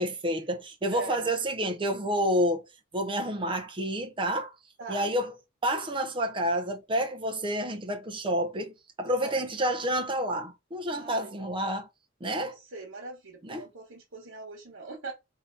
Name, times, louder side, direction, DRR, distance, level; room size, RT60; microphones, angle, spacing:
voice 1, 0.0-2.7 2.9-4.5 4.9-5.3 5.6-11.9 12.2-12.5 13.4-13.7, equal, 25° right, 0.7 m, -29 dB
voice 2, 0.9-1.3 4.8-5.1 9.2-9.5 10.9-11.4 12.4-15.1, right 3 dB, 65° right, 1.2 m, -42 dB
3.3 x 2.8 x 4.0 m
head